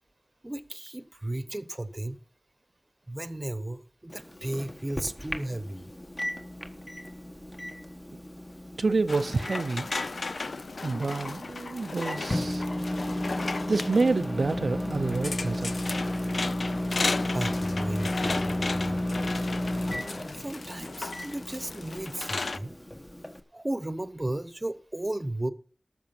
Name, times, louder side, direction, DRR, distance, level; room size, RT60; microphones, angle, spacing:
voice 1, 0.4-2.2 3.1-5.9 17.3-19.3 20.3-22.8 23.5-25.5, right 1 dB, 30° right, 1.0 m, -34 dB
Microwave oven, 4.1-23.4, left 1 dB, 15° left, 1.4 m, -34 dB
voice 2, 8.8-9.9 10.8-12.6 13.7-15.7, right 3 dB, 85° right, 0.6 m, -28 dB
sound 1, 9.1-22.6, left 3 dB, 85° left, 0.6 m, -35 dB
13.5 x 6.1 x 7.2 m
wide cardioid pair, 70°, 0 cm